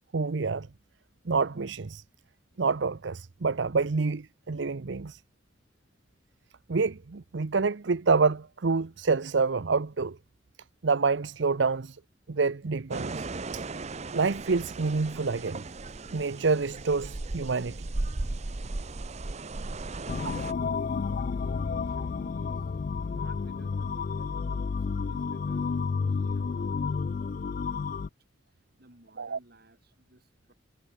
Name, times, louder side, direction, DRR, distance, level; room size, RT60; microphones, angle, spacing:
voice 1, 0.1-0.7 1.3-2.0 2.6-5.2 6.7-10.2 10.8-12.0 12.3-13.3 13.5-13.6 14.1-15.6 16.1-17.9 20.2-20.3 29.2-29.4, right 4 dB, 75° right, 0.7 m, -27 dB
sound 1, 12.9-20.5, right 2 dB, 35° right, 0.8 m, -36 dB
voice 2, 19.9-22.7 23.0-28.0 28.6-30.5, right 1 dB, 55° right, 4.8 m, -56 dB
sound 2, 20.1-28.1, left 5 dB, 45° left, 0.3 m, -31 dB
head